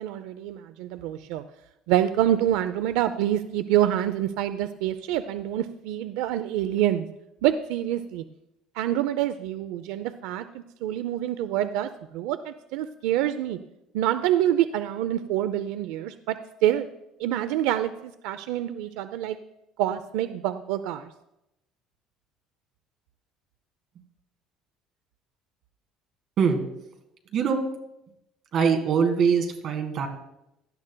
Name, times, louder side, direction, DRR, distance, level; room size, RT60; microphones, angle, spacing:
voice 1, 0.0-1.4 1.9-7.1 7.4-8.2 8.8-13.6 13.9-16.4 16.6-16.9 17.2-19.4 19.8-21.1, right 12 dB, 90° right, 11 dB, 0.4 m, -26 dB
voice 2, 28.5-30.1, right 6 dB, 40° right, 5 dB, 1.8 m, -22 dB
17.5 x 12.0 x 2.2 m, 0.86 s
cardioid pair, 165°, 0 cm